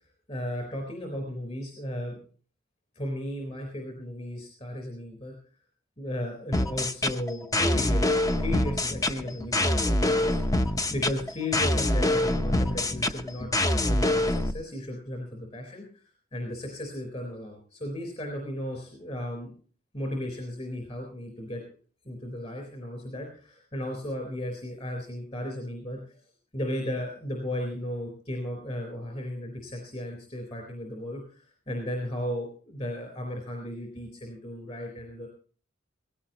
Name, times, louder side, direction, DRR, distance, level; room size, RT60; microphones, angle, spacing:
voice 1, 0.3-2.2 3.0-5.3 6.0-16.0 16.3-19.5 19.9-21.6 22.1-26.0 26.5-35.3, left 1 dB, 35° left, 3 dB, 4.1 m, -35 dB
sound 1, 6.5-14.5, left 1 dB, 15° left, 0.7 m, -25 dB
18.0 x 16.5 x 2.9 m, 0.42 s
head